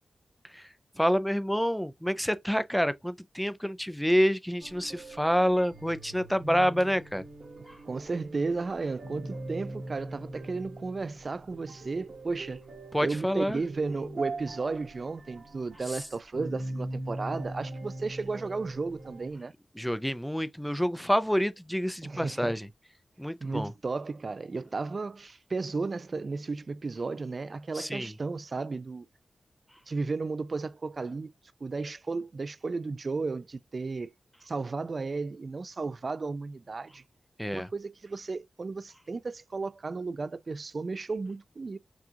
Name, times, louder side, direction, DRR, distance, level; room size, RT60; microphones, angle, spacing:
voice 1, 1.0-7.2 7.7-7.8 12.9-13.6 15.9-16.0 19.8-22.7 23.2-23.7 27.7-28.1 37.4-37.7, equal, ahead, 0.5 m, -28 dB
sound 1, 4.6-19.3, right 1 dB, 65° right, 1.6 m, -41 dB
voice 2, 7.9-12.6 13.0-19.5 22.0-22.6 23.4-29.1 29.9-31.3 31.6-34.1 34.4-37.0 37.5-41.8, right 3 dB, 50° right, 0.4 m, -34 dB
6.0 x 2.4 x 2.8 m
wide cardioid pair, 85°, 0 cm